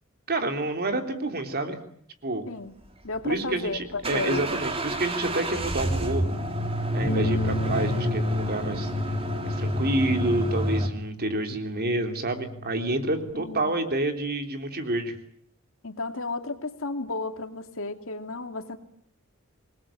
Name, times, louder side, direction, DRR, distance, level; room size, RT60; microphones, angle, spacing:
voice 1, 0.3-1.8 2.2-2.5 3.2-6.2 6.9-8.9 9.4-15.2, right 2 dB, 45° right, 6 dB, 3.4 m, -28 dB
voice 2, 3.0-4.4 13.4-13.7 15.8-18.8, left 3 dB, 70° left, 6 dB, 2.6 m, -33 dB
sound 1, 3.0-10.9, right 1 dB, 25° right, 3.5 m, -29 dB
Bass guitar, 7.1-13.3, left 2 dB, 50° left, 1.2 m, -33 dB
27.5 x 20.5 x 9.0 m, 0.67 s
head